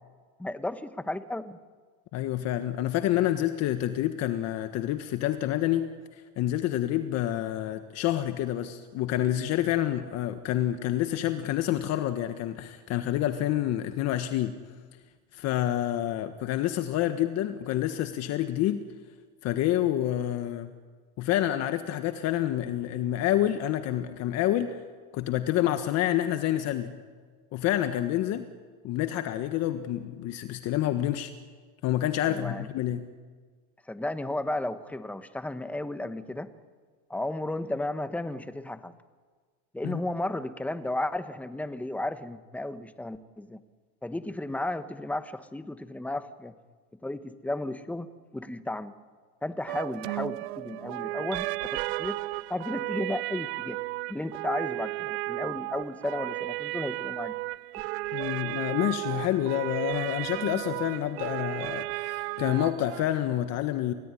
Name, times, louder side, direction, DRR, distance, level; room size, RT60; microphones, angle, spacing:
voice 1, 0.4-1.6 32.2-32.7 33.9-36.5 37.1-38.9 39.7-43.6 44.0-46.5 47.0-48.9 49.4-52.2 52.5-53.8 54.1-57.3, left 1 dB, 5° left, 11 dB, 1.3 m, -34 dB
voice 2, 2.1-5.8 6.4-14.6 15.3-18.8 19.4-20.7 21.2-24.8 25.1-27.0 27.5-28.5 28.8-31.3 31.8-33.0 39.8-40.0 58.1-63.9, left 12 dB, 50° left, 8 dB, 1.6 m, -28 dB
sound 1, 49.7-63.0, right 21 dB, 80° right, 0.7 m, -34 dB
29.5 x 18.0 x 10.0 m, 1.5 s
supercardioid pair, 130°, 32 cm